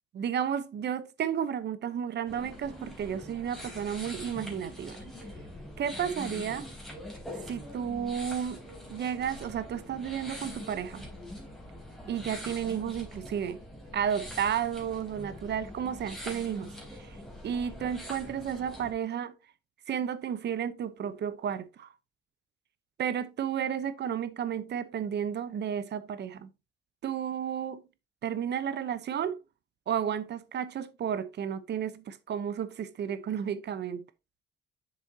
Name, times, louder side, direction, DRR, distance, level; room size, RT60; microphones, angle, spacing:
voice 1, 0.1-5.0 5.8-6.7 7.5-8.6 8.9-11.0 12.1-13.6 13.9-16.7 17.0-17.2 17.4-19.3 19.9-21.9 23.0-26.5 27.0-27.8 28.2-29.4 29.9-34.0, right 8 dB, 60° right, 0.9 m, -32 dB
sound 1, 2.3-18.9, equal, ahead, 3.8 m, -43 dB
7.5 x 7.1 x 2.8 m
cardioid pair, 90°, 20 cm